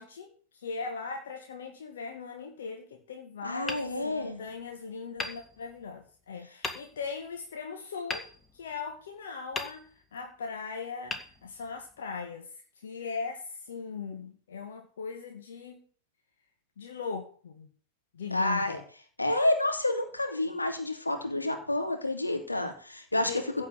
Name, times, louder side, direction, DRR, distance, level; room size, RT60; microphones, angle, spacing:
voice 1, 0.0-8.3 8.5-12.5 12.8-15.8 16.8-17.7 18.1-18.8 23.3-23.7, left 5 dB, 65° left, 3 dB, 2.2 m, -39 dB
voice 2, 3.4-4.4 18.3-18.8 19.2-23.3, left 1 dB, 80° left, 4 dB, 2.9 m, -29 dB
Hammer, 3.6-4.7 5.2-6.1 6.6-7.2 8.1-9.1 9.5-10.3 11.1-12.0, left 3 dB, 15° left, 2.1 m, -40 dB
16.0 x 5.4 x 8.3 m, 0.42 s
figure-of-eight pair, 90°, 0 cm